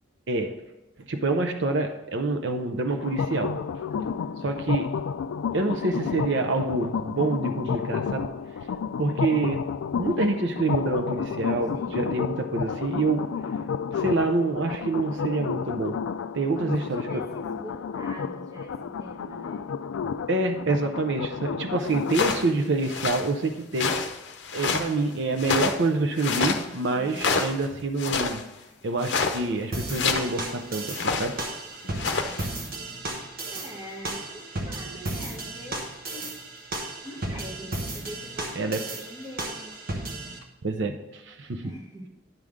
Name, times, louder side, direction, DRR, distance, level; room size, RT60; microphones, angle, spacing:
voice 1, 1.1-3.6 4.4-4.9 5.5-8.3 9.0-9.7 10.0-13.3 13.9-16.0 16.3-17.3 20.3-24.0 24.5-28.4 28.8-31.4 38.5-38.9 40.6-41.7, right 3 dB, 60° right, 6 dB, 0.6 m, -27 dB
sound 1, 3.0-22.2, left 6 dB, 80° left, 0.3 m, -31 dB
voice 2, 3.9-4.5 11.7-12.2 16.4-19.7 26.9-27.4 33.5-36.3 37.0-39.8 41.6-42.1, equal, 20° right, -2 dB, 1.6 m, -43 dB
sound 2, 22.1-22.5 22.8-23.3 23.8-24.9 25.4-25.9 26.2-26.6 27.1-27.6 28.0-28.4 29.0-29.4 29.9-30.3 30.9-31.3 31.8-32.5, left 4 dB, 60° left, 0.7 m, -27 dB
sound 3, 29.7-40.4, right 2 dB, 45° right, 1.1 m, -35 dB
10.5 x 3.6 x 6.3 m, 0.98 s
head